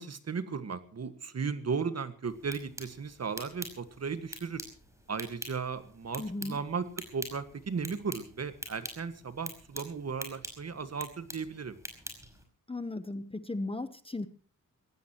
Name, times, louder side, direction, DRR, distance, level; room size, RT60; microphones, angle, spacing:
voice 1, 0.0-4.6 5.1-6.9 7.1-11.8, right 5 dB, 45° right, 11 dB, 1.7 m, -36 dB
sound 1, 2.3-12.4, right 1 dB, 10° right, 5.3 m, -46 dB
voice 2, 6.2-6.6 12.7-14.3, left 2 dB, 15° left, 13 dB, 1.0 m, -36 dB
23.5 x 17.0 x 3.0 m, 0.39 s
wide cardioid pair, 120°, 34 cm